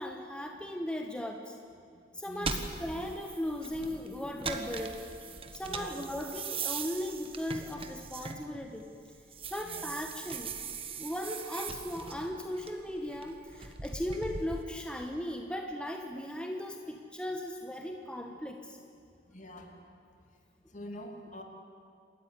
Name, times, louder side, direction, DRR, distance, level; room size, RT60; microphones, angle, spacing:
voice 1, 0.0-1.5 2.1-5.0 5.5-8.9 9.5-10.5 11.0-18.8, left 1 dB, 5° left, 3 dB, 1.2 m, -37 dB
voice 2, 2.3-2.6 5.6-6.0 9.6-9.9 19.3-19.8 20.7-21.4, left 1 dB, 45° left, 3 dB, 2.8 m, -45 dB
sound 1, 2.4-8.8 9.2-14.6, right 5 dB, 30° right, 1.4 m, -40 dB
28.0 x 13.5 x 9.7 m, 2.3 s
head